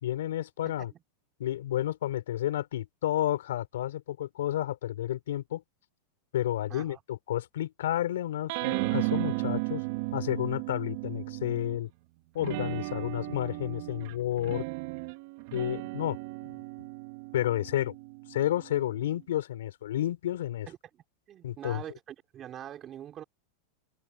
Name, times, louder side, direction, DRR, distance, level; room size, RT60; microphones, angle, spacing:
voice 1, 0.0-0.9 1.4-5.6 6.3-9.8 10.1-11.9 12.3-14.6 15.5-16.2 16.5-16.6 17.3-17.9 18.3-20.7 21.4-21.8, left 12 dB, 85° left, 3.8 m, -31 dB
voice 2, 6.7-7.0 20.7-23.2, right 11 dB, 35° right, 5.6 m, -44 dB
sound 1, 8.5-11.9 12.4-19.2, right 24 dB, 60° right, 1.9 m, -35 dB
supercardioid pair, 120°, 0 cm